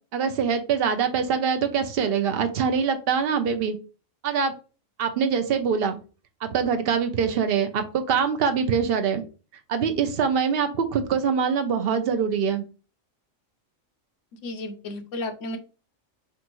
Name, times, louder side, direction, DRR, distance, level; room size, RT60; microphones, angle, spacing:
voice 1, 0.1-3.8 4.2-4.5 5.0-6.0 6.4-9.2 9.7-12.6, right 6 dB, 50° right, 7 dB, 0.9 m, -24 dB
voice 2, 14.4-15.6, left 2 dB, 70° left, 5 dB, 1.2 m, -33 dB
6.0 x 2.6 x 3.0 m, 0.34 s
omnidirectional pair, 1.4 m